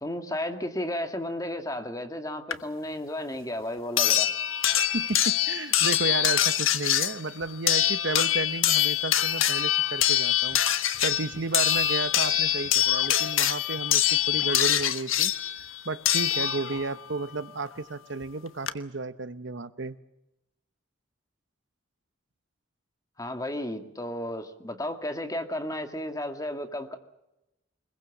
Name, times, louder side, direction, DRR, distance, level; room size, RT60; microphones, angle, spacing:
voice 1, 0.0-4.3 23.2-27.0, left 1 dB, 15° left, 2.1 m, -33 dB
sound 1, 2.5-2.6 4.0-17.0 18.2-18.3 18.7-18.8, left 11 dB, 85° left, 1.3 m, -24 dB
voice 2, 4.9-10.6 11.0-15.3 15.8-20.0, right 3 dB, 65° right, 0.9 m, -33 dB
Motor vehicle (road) / Siren, 9.7-10.1 11.5-12.0 12.8-13.3 14.4-15.0 16.3-16.8, left 3 dB, 65° left, 3.6 m, -42 dB
24.0 x 21.5 x 7.3 m
head